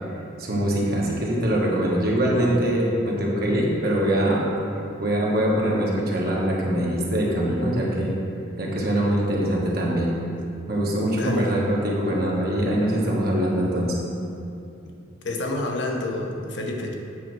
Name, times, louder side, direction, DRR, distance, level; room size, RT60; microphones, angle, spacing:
voice 1, 0.4-4.4 5.0-8.1 8.6-10.1 10.7-14.0, right 1 dB, 55° right, -3 dB, 1.5 m, -23 dB
voice 2, 11.1-11.5 15.2-16.9, left 2 dB, 70° left, 1 dB, 1.0 m, -29 dB
8.3 x 4.2 x 6.1 m, 2.7 s
head